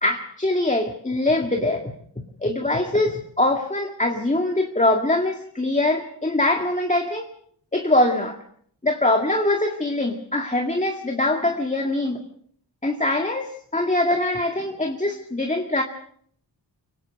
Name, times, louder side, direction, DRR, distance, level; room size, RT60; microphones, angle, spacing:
voice 1, 0.0-1.9 2.4-7.3 7.7-8.4 8.8-12.2 12.8-15.8, left 2 dB, 15° left, 3 dB, 1.9 m, -23 dB
24.5 x 18.0 x 6.4 m, 0.64 s
wide cardioid pair, 90°, 44 cm